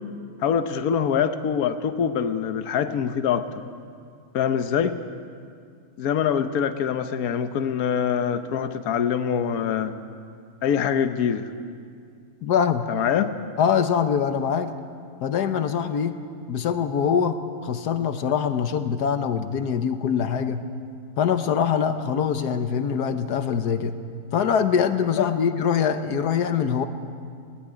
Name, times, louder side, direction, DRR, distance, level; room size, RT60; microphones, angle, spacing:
voice 1, 0.4-3.5 4.3-5.0 6.0-9.9 10.6-11.5 12.9-13.3 25.2-25.3, left 8 dB, 70° left, 9 dB, 1.3 m, -24 dB
voice 2, 12.4-12.9 13.6-14.7 15.2-16.2 16.5-20.6 21.2-23.9 24.3-26.9, left 7 dB, 85° left, 9 dB, 1.5 m, -23 dB
19.5 x 18.0 x 10.0 m, 2.3 s
omnidirectional pair, 1.7 m